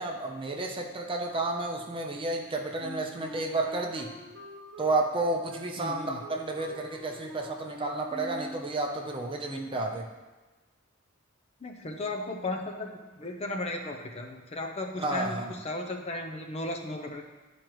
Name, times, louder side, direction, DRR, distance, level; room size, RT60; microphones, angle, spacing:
voice 1, 0.0-4.1 4.8-10.1 15.0-15.5, right 2 dB, 25° right, 2 dB, 0.6 m, -31 dB
Wind instrument woodwind instrument, 2.8-8.7, left 1 dB, 60° right, 1.2 m, -45 dB
voice 2, 5.8-6.2 11.6-17.2, left 2 dB, 30° left, 3 dB, 0.5 m, -35 dB
10.5 x 5.1 x 3.1 m, 1.2 s
head